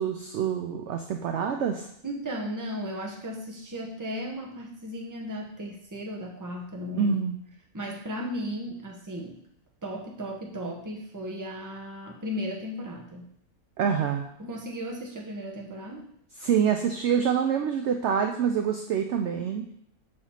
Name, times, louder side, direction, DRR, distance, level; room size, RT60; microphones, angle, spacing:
voice 1, 0.0-1.9 6.9-7.4 13.8-14.3 16.4-19.6, right 7 dB, 70° right, 5 dB, 0.7 m, -26 dB
voice 2, 2.0-7.1 7.7-9.4 9.8-13.3 14.4-16.1, equal, 15° right, -1 dB, 0.8 m, -35 dB
6.5 x 3.1 x 5.6 m, 0.70 s
omnidirectional pair, 1.6 m